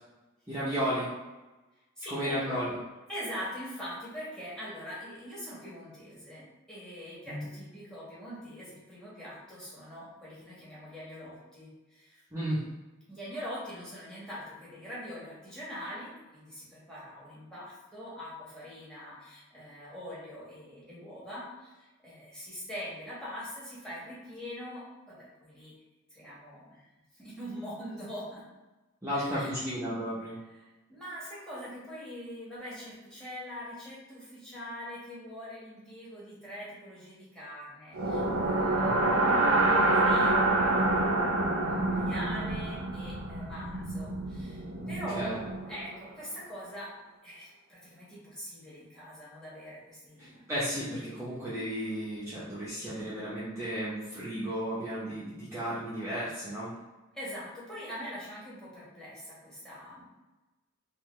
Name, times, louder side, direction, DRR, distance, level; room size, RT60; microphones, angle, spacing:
voice 1, 0.5-1.1 2.1-2.8 7.3-7.4 12.3-12.6 29.0-30.4 38.8-39.0 44.8-45.4 50.2-56.7, equal, 15° right, -10 dB, 0.7 m, -34 dB
voice 2, 2.0-2.6 3.1-12.2 13.1-25.7 26.1-28.5 29.1-29.6 30.6-39.6 39.9-40.9 41.2-45.4 45.7-46.9 47.2-50.5 57.1-60.1, equal, 5° left, -9 dB, 1.5 m, -43 dB
sound 1, 37.9-46.0, right 2 dB, 85° right, 0.6 m, -27 dB
3.9 x 2.5 x 3.1 m, 1.1 s
head